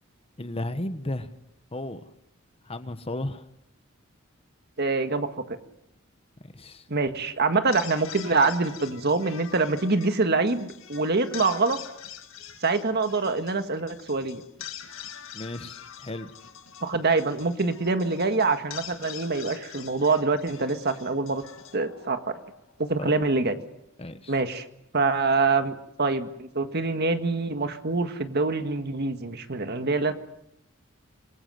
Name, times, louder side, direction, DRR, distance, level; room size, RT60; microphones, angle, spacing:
voice 1, 0.4-1.3 1.7-2.0 2.6-3.4 6.5-6.8 15.3-16.3 23.0-23.1 24.0-24.3, left 1 dB, 30° left, 11 dB, 1.3 m, -34 dB
voice 2, 4.8-5.6 6.9-11.8 12.6-14.4 16.8-21.4 21.7-22.3 22.8-23.6 24.3-24.6 24.9-30.1, right 3 dB, 55° right, 8 dB, 1.8 m, -25 dB
sound 1, 7.5-22.8, left 9 dB, 75° left, 2.2 m, -44 dB
26.0 x 21.5 x 7.9 m, 0.79 s
head